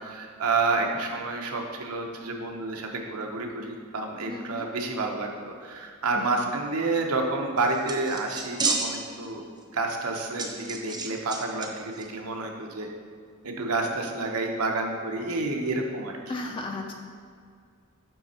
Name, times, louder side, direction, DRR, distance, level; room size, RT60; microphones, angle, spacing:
voice 1, 0.0-5.3 5.6-9.5 9.7-12.9 13.4-16.2, right 3 dB, 85° right, 2 dB, 0.9 m, -29 dB
voice 2, 4.3-4.7 6.1-6.3 16.3-16.9, left 2 dB, 25° left, 2 dB, 0.5 m, -35 dB
sound 1, 7.6-9.3 9.6-9.7 10.4-11.7 11.9-12.0, right 3 dB, 20° right, 0.7 m, -30 dB
8.1 x 4.2 x 4.3 m, 2.1 s
head